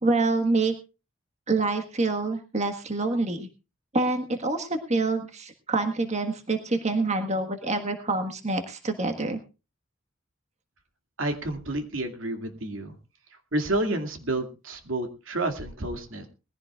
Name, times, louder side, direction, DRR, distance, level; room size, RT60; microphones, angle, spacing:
voice 1, 0.0-0.7 1.5-3.5 3.9-9.4, right 3 dB, 35° right, 6 dB, 1.5 m, -26 dB
voice 2, 11.2-13.0 13.5-16.3, right 2 dB, 80° right, 5 dB, 2.3 m, -30 dB
21.0 x 15.5 x 2.4 m, 0.30 s
head